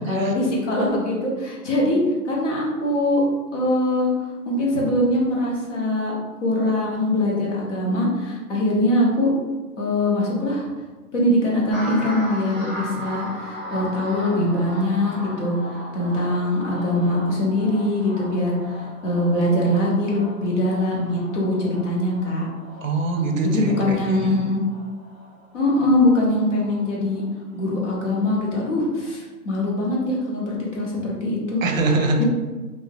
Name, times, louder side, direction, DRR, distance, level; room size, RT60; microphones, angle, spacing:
voice 1, 0.1-2.0 2.2-3.2 3.5-4.1 4.5-6.1 6.4-9.3 9.8-10.6 11.1-15.5 15.9-18.6 19.0-22.4 23.4-24.6 25.5-27.2 27.5-31.6 32.2-32.3, left 1 dB, 50° left, -4 dB, 1.0 m, -22 dB
sound 1, 11.7-28.3 28.7-29.1, equal, 5° left, 1.3 m, -38 dB
voice 2, 22.8-24.4 31.6-32.2, right 2 dB, 60° right, 4 dB, 0.6 m, -23 dB
3.4 x 2.6 x 2.3 m, 1.2 s
hypercardioid pair, 155°, 47 cm